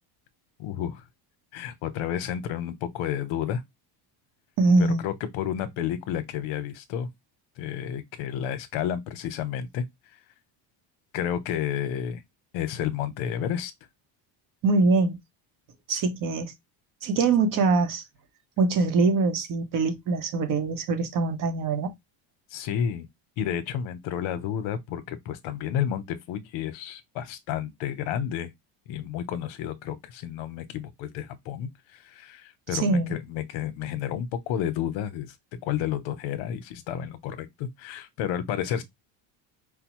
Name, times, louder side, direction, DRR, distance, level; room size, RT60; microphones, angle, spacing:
voice 1, 0.6-1.0 1.5-3.6 4.8-7.1 7.6-9.8 11.1-12.2 12.5-13.7 22.5-23.1 23.4-28.5 28.9-31.7 32.0-35.3 35.6-38.8, left 9 dB, 75° left, 0.8 m, -31 dB
voice 2, 4.6-5.1 14.6-15.2 15.9-16.5 17.0-18.0 18.6-21.9 32.7-33.2, right 3 dB, 45° right, 0.7 m, -23 dB
4.9 x 2.0 x 2.9 m
cardioid pair, 160°, 48 cm